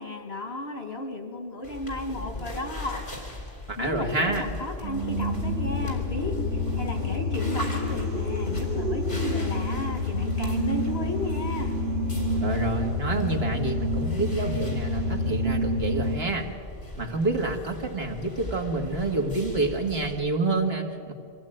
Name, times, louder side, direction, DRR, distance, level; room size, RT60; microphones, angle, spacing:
voice 1, 0.0-3.0 3.8-6.4 6.8-11.8, left 2 dB, 70° left, 5 dB, 2.4 m, -34 dB
sound 1, 1.6-20.1, left 2 dB, 55° left, 3.9 m, -39 dB
voice 2, 3.8-4.5 12.4-16.5 17.0-21.1, right 2 dB, 70° right, 2 dB, 2.3 m, -28 dB
sound 2, 4.8-16.2, left 1 dB, 55° right, 1.8 m, -28 dB
24.5 x 15.5 x 8.9 m, 2.5 s
omnidirectional pair, 1.1 m